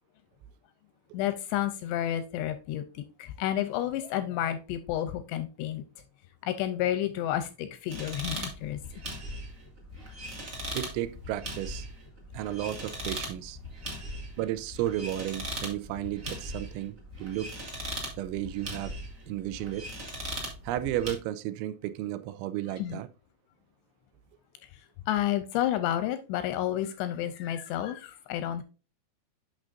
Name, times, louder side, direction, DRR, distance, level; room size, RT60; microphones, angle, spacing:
voice 1, 1.1-5.8 6.4-8.8 22.8-23.0 25.1-28.6, left 12 dB, 85° left, 2.6 m, -30 dB
sound 1, 7.9-21.1, equal, 50° right, 0.9 m, -39 dB
voice 2, 10.7-11.9 12.3-13.6 14.4-17.5 18.2-19.0 19.3-19.9 20.6-23.1, right 13 dB, 85° right, 2.9 m, -33 dB
8.5 x 6.2 x 2.6 m
omnidirectional pair, 5.4 m